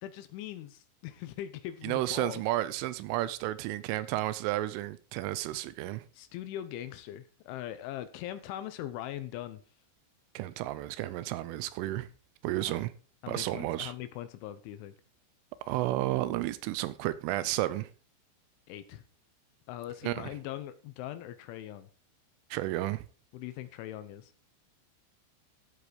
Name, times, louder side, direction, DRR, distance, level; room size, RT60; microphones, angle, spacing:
voice 1, 0.0-2.4 6.1-9.6 12.6-12.9 13.2-14.9 18.7-19.0 19.7-21.9 23.3-24.3, left 12 dB, 75° left, 3.1 m, -41 dB
voice 2, 1.8-6.1 10.3-12.1 12.4-12.9 13.3-13.9 15.6-17.9 20.0-20.3 22.5-23.1, right 15 dB, 80° right, 3.1 m, -32 dB
13.5 x 8.3 x 5.2 m
omnidirectional pair, 5.9 m